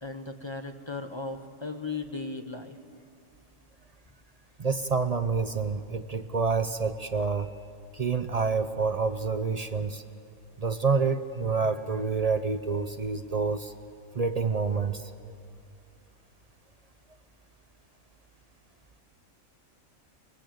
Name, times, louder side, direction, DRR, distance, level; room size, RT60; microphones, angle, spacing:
voice 1, 0.0-2.8, left 3 dB, 20° left, 7 dB, 1.0 m, -36 dB
voice 2, 4.6-7.5 7.9-10.0 10.6-13.7 14.1-15.1, right 4 dB, 40° right, 10 dB, 0.6 m, -28 dB
23.5 x 21.5 x 7.8 m, 2.3 s
omnidirectional pair, 1.4 m